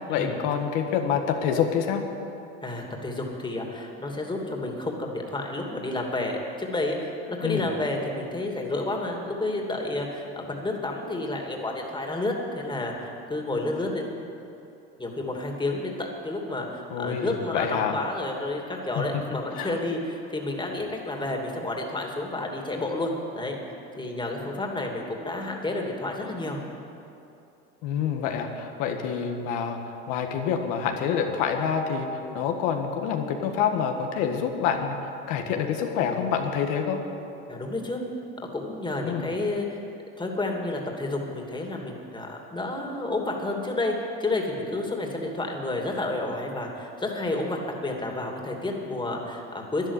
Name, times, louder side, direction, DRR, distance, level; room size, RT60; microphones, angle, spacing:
voice 1, 0.0-2.0 7.4-7.7 16.9-18.0 18.9-19.2 19.5-19.7 27.8-29.8 30.1-32.1 32.3-37.0 39.0-39.3, left 7 dB, 75° left, 4 dB, 1.6 m, -27 dB
voice 2, 2.6-14.2 15.0-23.6 24.0-26.6 37.5-38.0 38.5-39.8 40.2-43.9 44.2-49.9, left 2 dB, 15° left, 1 dB, 2.8 m, -30 dB
12.0 x 11.0 x 8.5 m, 2.8 s
supercardioid pair, 85°, 31 cm